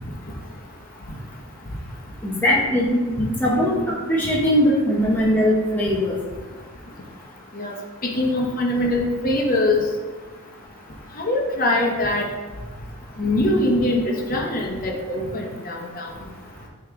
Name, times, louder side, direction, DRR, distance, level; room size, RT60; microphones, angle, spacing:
voice 1, 2.2-3.7 4.1-6.1, equal, 10° left, -6 dB, 0.8 m, -20 dB
voice 2, 8.0-9.9 11.2-12.3 13.2-16.1, left 1 dB, 40° left, -1 dB, 1.0 m, -22 dB
8.9 x 3.3 x 3.6 m, 1.3 s
head